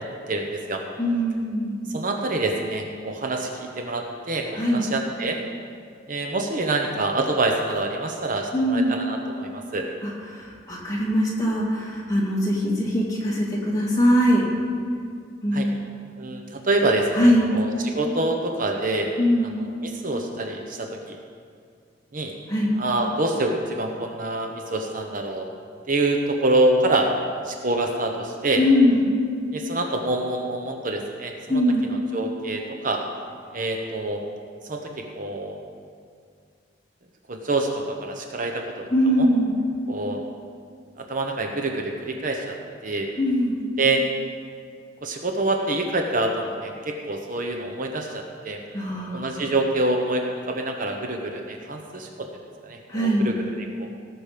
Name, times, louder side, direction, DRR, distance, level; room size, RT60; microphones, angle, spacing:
voice 1, 0.0-0.8 1.9-5.4 6.1-9.9 15.5-15.7 16.2-19.1 19.4-21.2 22.1-22.3 22.8-25.4 25.9-27.1 27.4-28.6 29.5-31.6 31.9-33.0 33.5-34.2 34.6-35.6 37.3-38.6 39.2-39.3 39.9-40.2 41.0-42.6 42.8-43.1 43.8-44.0 45.0-48.6 48.9-52.3 52.6-53.9, right 2 dB, 45° right, 2 dB, 0.9 m, -26 dB
voice 2, 1.0-1.9 4.5-4.8 8.5-8.9 10.0-14.4 15.4-15.8 17.1-17.5 19.2-19.6 22.5-22.7 28.6-29.1 31.5-31.9 38.9-39.5 43.2-43.6 48.7-49.4 52.9-53.3, equal, 20° left, -4 dB, 2.4 m, -21 dB
18.0 x 6.1 x 5.2 m, 2.2 s
head